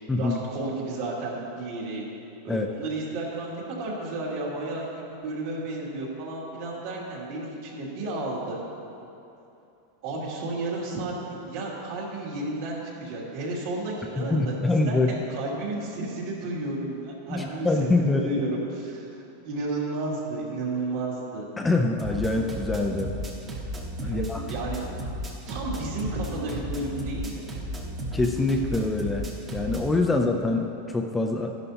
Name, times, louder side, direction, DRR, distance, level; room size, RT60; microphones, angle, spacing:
voice 1, 0.2-2.0 2.4-8.6 10.0-17.7 18.0-21.5 24.0-24.8 25.5-27.5, right 2 dB, 55° right, -4 dB, 2.5 m, -32 dB
voice 2, 14.2-15.1 17.3-18.3 21.6-23.1 24.0-24.4 28.1-31.5, left 2 dB, 10° left, 3 dB, 0.4 m, -25 dB
sound 1, 22.0-30.0, equal, 20° right, 1.1 m, -34 dB
12.5 x 11.0 x 2.8 m, 2.8 s
supercardioid pair, 155°, 0 cm